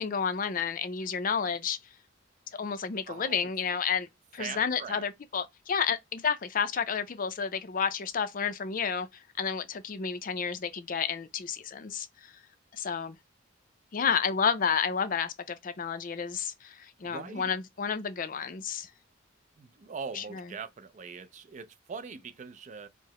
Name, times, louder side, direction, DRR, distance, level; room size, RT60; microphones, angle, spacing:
voice 1, 0.0-1.8 2.5-9.1 9.4-12.3 12.7-13.2 13.9-18.9 20.1-20.4, left 6 dB, 45° left, 0.5 m, -31 dB
voice 2, 3.1-3.5 4.4-5.0 17.0-17.5 19.6-22.9, right 5 dB, 40° right, 0.4 m, -42 dB
4.6 x 2.0 x 2.9 m
head